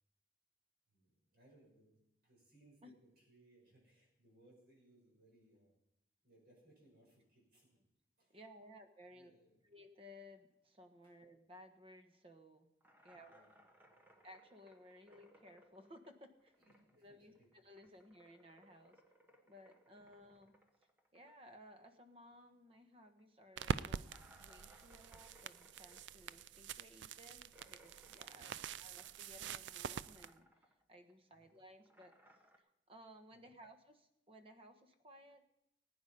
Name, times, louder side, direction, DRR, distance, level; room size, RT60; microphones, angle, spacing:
voice 1, 0.9-5.8 6.2-7.8 8.2-8.4 9.1-9.6 11.0-11.1 13.0-14.2 16.6-17.5 20.0-20.3 28.3-28.7 31.3-31.5 33.3-33.6, right 1 dB, 60° right, -2 dB, 7.0 m, -69 dB
voice 2, 8.3-9.3 9.6-12.7 13.0-13.4 14.2-16.6 17.0-19.0 19.4-20.5 21.1-24.0 24.4-30.5 30.9-32.1 32.6-35.4, equal, 30° right, 6 dB, 1.3 m, -59 dB
sound 1, 12.8-17.1 17.4-22.4 22.7-22.8 23.2-23.3 24.0-29.6 29.9-30.8 31.1-32.6, equal, 10° right, 1.3 m, -67 dB
sound 2, 23.6-30.3, right 6 dB, 85° right, 0.4 m, -45 dB
19.5 x 9.3 x 5.4 m, 0.82 s
head